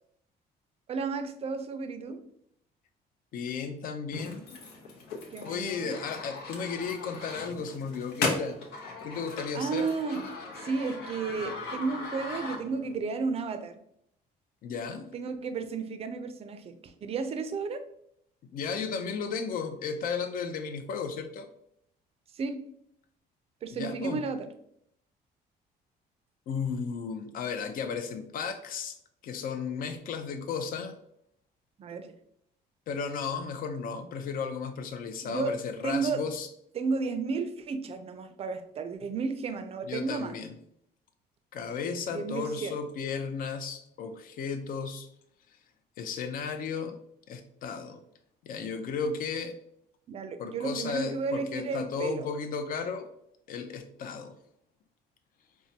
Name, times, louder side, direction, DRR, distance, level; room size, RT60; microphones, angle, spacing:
voice 1, 0.9-2.2 5.3-6.0 9.5-10.2 10.6-13.8 15.1-17.8 22.3-22.6 23.6-24.5 31.8-32.1 35.2-35.5 35.8-36.2 36.8-40.3 42.1-42.7 50.1-52.3, right 4 dB, 35° right, 9 dB, 0.4 m, -33 dB
voice 2, 3.3-4.4 5.4-8.6 9.0-9.9 14.6-15.1 18.5-21.5 23.8-24.3 26.5-29.0 29.2-31.0 32.9-36.5 39.8-40.6 41.5-45.1 45.5-45.6 46.0-47.0 47.3-48.0 48.4-49.6 50.4-53.1 53.5-54.4, left 5 dB, 55° left, 8 dB, 0.5 m, -34 dB
sound 1, 4.1-13.0, left 3 dB, 85° left, 0.8 m, -38 dB
4.5 x 2.2 x 2.8 m, 0.71 s
cardioid pair, 110°, 17 cm